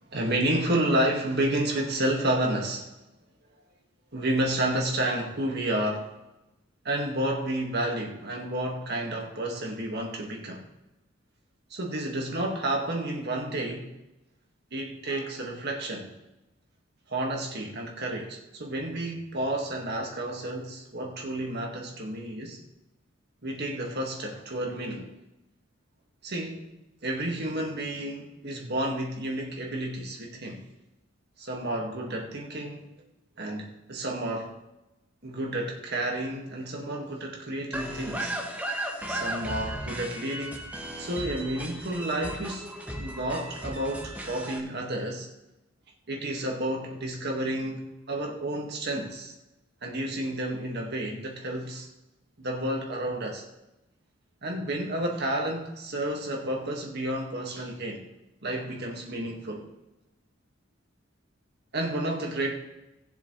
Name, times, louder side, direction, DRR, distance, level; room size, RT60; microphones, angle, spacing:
voice 1, 0.1-2.9 4.1-6.1 6.8-10.6 11.7-13.9 14.7-16.1 17.1-22.6 23.4-25.1 26.2-26.7 27.0-30.6 31.4-32.9 33.4-34.5 35.2-38.4 39.1-40.6 41.0-42.7 43.0-45.3 46.1-49.3 49.8-51.9 52.4-53.4 54.4-58.0 58.4-59.7 61.7-62.5, right 1 dB, 50° right, 1 dB, 2.0 m, -31 dB
sound 1, 37.7-44.6, right 1 dB, 5° right, 1.2 m, -35 dB
19.0 x 7.3 x 3.3 m, 0.96 s
head